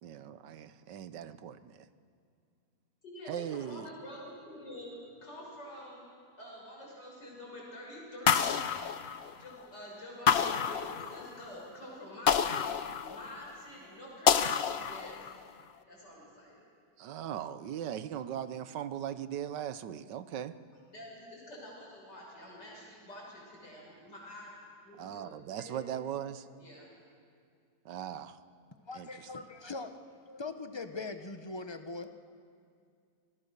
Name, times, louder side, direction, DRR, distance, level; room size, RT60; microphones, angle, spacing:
voice 1, 0.0-1.9 3.2-3.9 17.0-20.5 25.0-26.5 27.8-28.4 28.9-29.4, right 10 dB, 85° right, 13 dB, 1.5 m, -39 dB
voice 2, 3.0-6.0 6.4-8.5 9.3-15.3 15.9-16.6 20.9-26.0 26.6-26.9, left 1 dB, 85° left, -3 dB, 7.0 m, -48 dB
sound 1, 8.3-9.6 10.3-11.4 12.3-13.5 14.3-15.4, left 7 dB, 50° left, 0.8 m, -28 dB
voice 3, 28.9-32.1, left 3 dB, 20° left, 8 dB, 0.9 m, -41 dB
27.5 x 21.0 x 6.7 m, 2.3 s
omnidirectional pair, 1.8 m